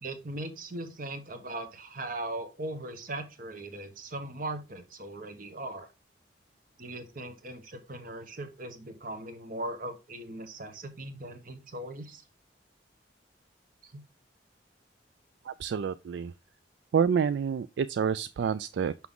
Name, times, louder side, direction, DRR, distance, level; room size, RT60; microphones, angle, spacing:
voice 1, 0.0-5.9 6.8-12.2 13.8-14.0, right 2 dB, 45° right, 1.2 m, -39 dB
voice 2, 15.5-16.3 16.9-19.1, right 7 dB, 65° right, 0.3 m, -28 dB
6.0 x 6.0 x 3.7 m
head